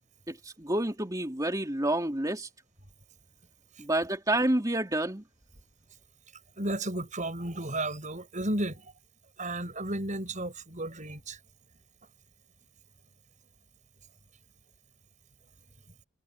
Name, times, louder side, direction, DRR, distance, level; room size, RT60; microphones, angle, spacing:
voice 1, 0.3-2.5 3.8-5.2, right 1 dB, 15° right, 3.0 m, -29 dB
voice 2, 6.6-8.9 9.4-11.4, right 1 dB, 35° right, 6.8 m, -33 dB
head